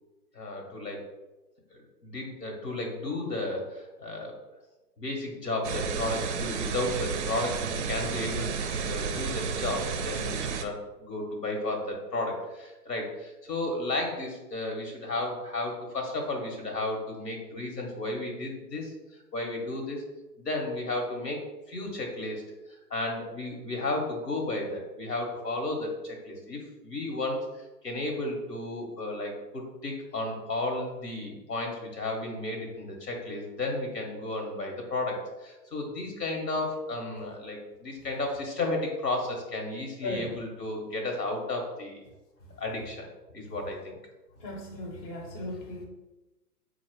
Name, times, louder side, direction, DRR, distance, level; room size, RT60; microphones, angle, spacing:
voice 1, 0.3-1.1 2.0-4.3 5.0-18.9 19.3-20.0 20.4-21.4 21.7-22.4 22.7-27.5 27.8-42.0 42.6-43.1 43.3-44.0, left 2 dB, 80° left, 2 dB, 1.3 m, -33 dB
sound 1, 5.6-10.7, right 6 dB, 50° right, 0.4 m, -32 dB
voice 2, 40.0-40.4 44.4-45.8, left 2 dB, 30° left, 1 dB, 0.7 m, -36 dB
4.2 x 2.3 x 4.6 m, 1.1 s
figure-of-eight pair, 115°, 48 cm